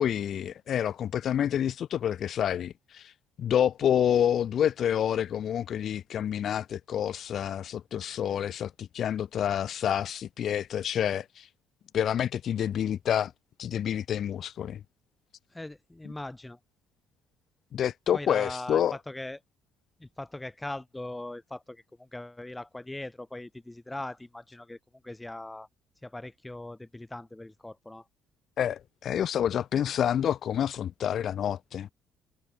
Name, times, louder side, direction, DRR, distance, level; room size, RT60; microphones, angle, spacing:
voice 1, 0.0-3.1 3.4-11.5 11.9-13.3 13.6-14.8 17.7-19.0 28.6-31.9, left 9 dB, 50° left, 3.3 m, -28 dB
voice 2, 15.5-16.6 18.1-19.4 20.0-24.8 25.0-25.7 26.0-28.0, left 2 dB, 10° left, 3.9 m, -40 dB
cardioid pair, 110°, 0 cm